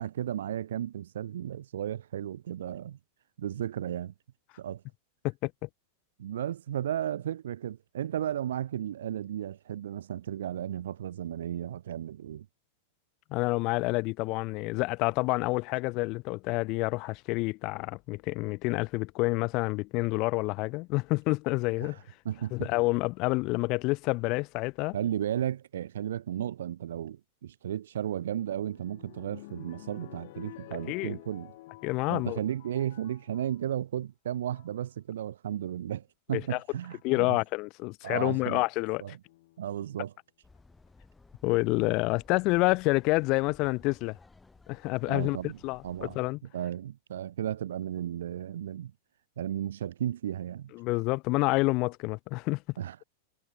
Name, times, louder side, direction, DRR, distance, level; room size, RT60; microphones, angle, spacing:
voice 1, 0.0-3.0 3.4-4.1 4.6-4.8 6.2-12.5 21.8-21.9 22.2-22.7 24.9-31.5 32.1-37.4 38.0-38.6 39.0-39.1 39.6-40.1 45.1-45.6 45.8-46.2 46.5-48.9 49.4-50.7 52.8-53.0, right 11 dB, 90° right, 1.2 m, -34 dB
voice 2, 5.2-5.7 13.3-22.0 22.5-25.0 30.9-31.2 31.8-32.4 36.3-36.6 37.0-39.2 41.4-44.2 44.7-45.4 45.6-46.4 50.7-52.6, left 24 dB, 40° left, 0.5 m, -28 dB
sound 1, 28.0-33.6 34.3-34.8 36.0-36.1 36.8-37.1 39.3-39.9 40.6-40.7 40.9-41.0, left 19 dB, 60° left, 1.2 m, -50 dB
sound 2, 40.4-46.2, left 3 dB, 10° left, 2.3 m, -58 dB
supercardioid pair, 145°, 0 cm